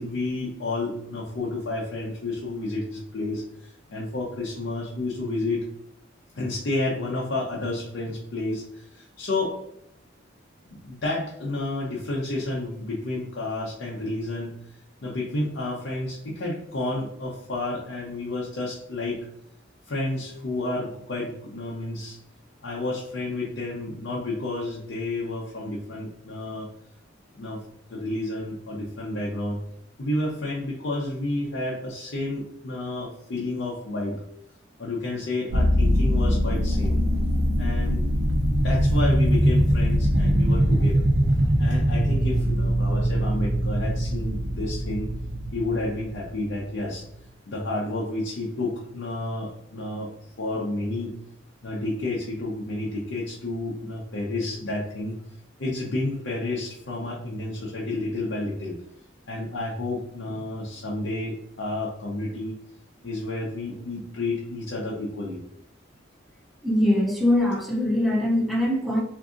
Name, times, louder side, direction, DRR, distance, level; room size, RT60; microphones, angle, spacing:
voice 1, 0.0-5.7 6.3-9.6 10.8-19.2 19.9-22.2 22.6-26.7 27.4-27.6 27.9-29.6 30.0-34.2 34.8-37.0 37.6-38.0 38.6-41.1 41.6-45.1 45.5-47.0 47.5-50.1 50.4-51.1 51.6-55.2 55.6-58.8 59.3-62.5 63.0-65.4, left 2 dB, 70° left, -4 dB, 0.6 m, -30 dB
sound 1, 35.5-46.9, equal, 70° right, 0.5 m, -22 dB
voice 2, 66.6-69.0, left 1 dB, ahead, -2 dB, 0.4 m, -22 dB
3.6 x 2.6 x 2.4 m, 0.79 s
head